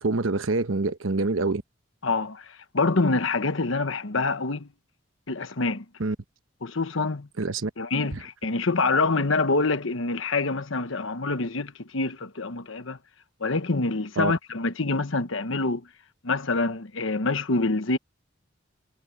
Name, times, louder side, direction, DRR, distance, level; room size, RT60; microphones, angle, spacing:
voice 1, 0.0-1.6 6.0-6.1 7.4-7.7 14.2-14.3, right 3 dB, 80° right, 1.1 m, -25 dB
voice 2, 2.0-4.7 5.3-5.8 6.6-7.3 7.8-13.0 13.4-15.9 16.2-18.0, left 3 dB, 75° left, 1.2 m, -26 dB
head